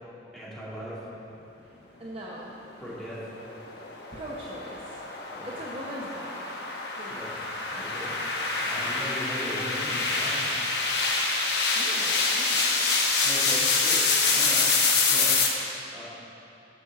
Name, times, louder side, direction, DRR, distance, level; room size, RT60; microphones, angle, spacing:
voice 1, 0.3-1.1 2.8-3.3 5.3-5.6 7.1-7.3 7.7-8.2 8.6-10.5 13.2-14.7 15.1-15.4 15.9-16.0, equal, 5° left, -10 dB, 2.3 m, -38 dB
voice 2, 2.0-2.5 4.1-5.0 5.4-6.7 7.0-7.2 11.7-13.0, equal, 35° right, -5 dB, 0.8 m, -40 dB
sound 1, 3.4-15.5, left 4 dB, 65° left, 1.1 m, -26 dB
7.6 x 6.1 x 6.9 m, 2.9 s
head